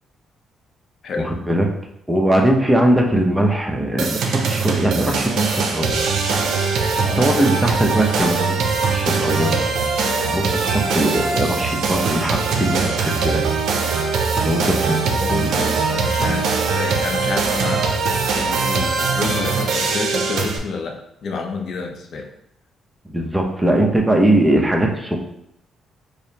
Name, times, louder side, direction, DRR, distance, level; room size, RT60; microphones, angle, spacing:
voice 1, 1.2-1.7 2.1-6.1 7.2-9.6 10.3-13.4 14.4-15.3 23.1-25.2, right 1 dB, 10° right, 1 dB, 0.7 m, -20 dB
sound 1, 4.0-20.6, right 4 dB, 75° right, 0.5 m, -21 dB
voice 2, 7.0-7.3 15.2-22.3, left 4 dB, 60° left, 2 dB, 0.6 m, -29 dB
4.8 x 2.0 x 2.8 m, 0.78 s
cardioid pair, 90°, 0 cm